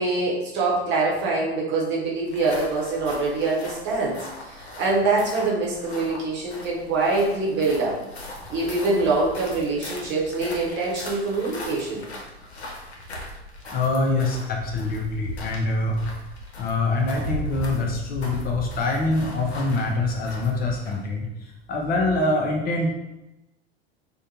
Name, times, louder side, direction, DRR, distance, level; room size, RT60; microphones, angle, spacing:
voice 1, 0.0-7.9 8.5-12.0, right 3 dB, 35° right, -4 dB, 0.9 m, -24 dB
sound 1, 2.2-21.1, left 1 dB, 80° left, 0.6 m, -38 dB
voice 2, 13.7-16.0 16.6-21.3 21.7-22.9, left 2 dB, 30° left, 0 dB, 0.5 m, -24 dB
2.6 x 2.1 x 2.8 m, 0.96 s
figure-of-eight pair, 80°, 32 cm